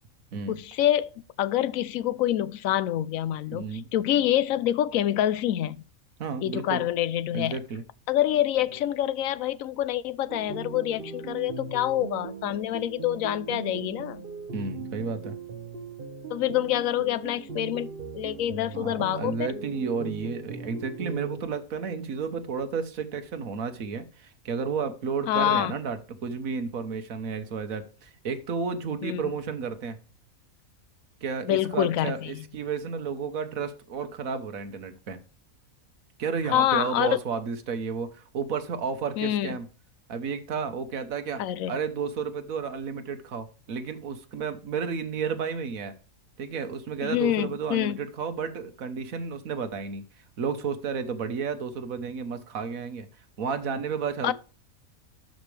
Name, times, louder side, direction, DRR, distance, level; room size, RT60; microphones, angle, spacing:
voice 1, 0.5-1.1 1.4-5.8 6.4-7.6 8.1-14.2 16.3-19.5 25.3-25.7 29.0-29.2 31.5-32.4 36.5-37.2 39.2-39.6 41.4-41.8 47.0-48.0 54.2-54.3, left 12 dB, 70° left, 1.0 m, -26 dB
voice 2, 3.5-3.9 6.2-6.9 7.3-7.8 14.5-15.4 18.7-30.0 31.2-35.2 36.2-39.7 40.1-41.4 41.7-45.9 46.4-50.0 50.4-53.1 53.4-54.3, right 5 dB, 70° right, 1.5 m, -32 dB
sound 1, 10.3-21.4, right 4 dB, 40° right, 1.3 m, -39 dB
12.0 x 5.3 x 3.3 m
omnidirectional pair, 1.5 m